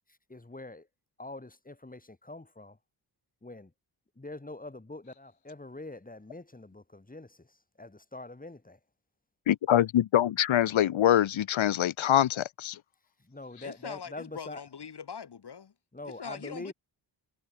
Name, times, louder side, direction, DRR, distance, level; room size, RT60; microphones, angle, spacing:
voice 1, 0.3-0.9 1.2-2.8 3.4-3.7 4.2-7.5 7.8-8.8 13.2-14.7 15.9-16.7, left 2 dB, 20° left, 7.4 m, -44 dB
voice 2, 9.5-12.8, left 11 dB, 90° left, 1.4 m, -24 dB
voice 3, 13.6-15.7 16.2-16.7, left 7 dB, 60° left, 3.7 m, -42 dB
cardioid pair, 90°, 46 cm